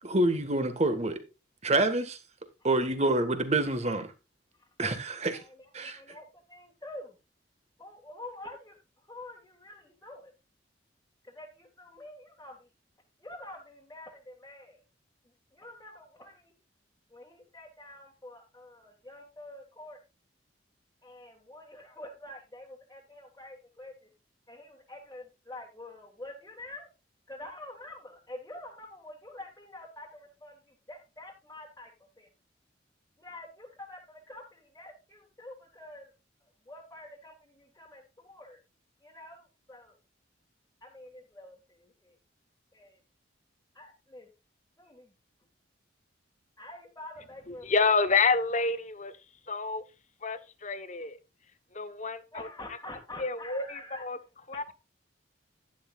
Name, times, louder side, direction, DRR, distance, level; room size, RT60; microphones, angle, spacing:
voice 1, 0.0-1.2 1.6-2.2 2.6-4.1 4.8-5.4 5.7-6.0, right 2 dB, 35° right, 1.6 m, -27 dB
voice 2, 5.9-7.2 7.8-8.8 9.1-10.3 11.2-12.7 13.2-14.8 15.5-16.5 17.1-20.0 21.0-24.1 24.5-26.9 27.3-32.3 33.2-36.1 36.7-38.6 39.0-40.0 40.8-42.1 42.7-43.0 43.7-44.3 44.8-45.1 46.6-47.7 52.3-54.0, left 1 dB, 15° left, 1.8 m, -47 dB
voice 3, 47.5-49.2 49.5-49.8 50.2-51.2 51.7-52.5 53.2-54.2 54.5-54.7, left 4 dB, 40° left, 1.0 m, -28 dB
11.5 x 10.5 x 2.4 m
head